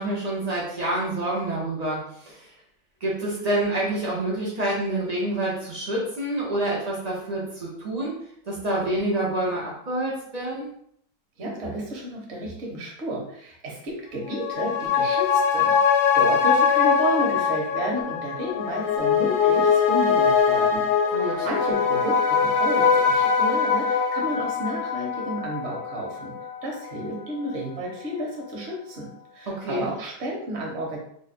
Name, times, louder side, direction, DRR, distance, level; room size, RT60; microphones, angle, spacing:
voice 1, 0.0-2.5 3.0-8.1 8.5-10.7 21.1-21.5 29.5-29.9, right 1 dB, 80° right, -5 dB, 0.3 m, -27 dB
voice 2, 11.4-15.7 16.1-20.8 21.1-26.3 26.6-31.0, right 1 dB, 45° right, -1 dB, 1.1 m, -31 dB
sound 1, 14.2-27.1 27.4-27.5, left 6 dB, 80° left, 1.3 m, -22 dB
3.0 x 2.4 x 4.1 m, 0.68 s
omnidirectional pair, 2.0 m